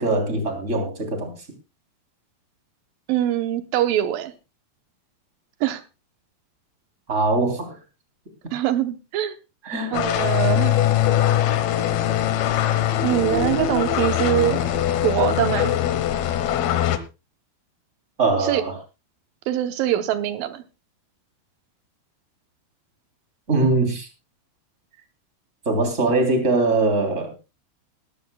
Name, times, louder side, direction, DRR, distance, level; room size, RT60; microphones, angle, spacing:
voice 1, 0.0-1.3 7.1-7.7 9.6-9.9 18.2-18.8 23.5-24.1 25.6-27.3, right 3 dB, 20° right, 4 dB, 3.2 m, -22 dB
voice 2, 3.1-4.3 5.6-5.8 8.5-9.3 9.9-10.7 13.0-14.6 15.0-15.7 18.4-18.6 19.5-20.6, right 12 dB, 70° right, 9 dB, 2.4 m, -23 dB
sound 1, 9.9-17.0, left 11 dB, 75° left, 2.9 m, -22 dB
20.5 x 14.5 x 2.3 m, 0.28 s
omnidirectional pair, 4.7 m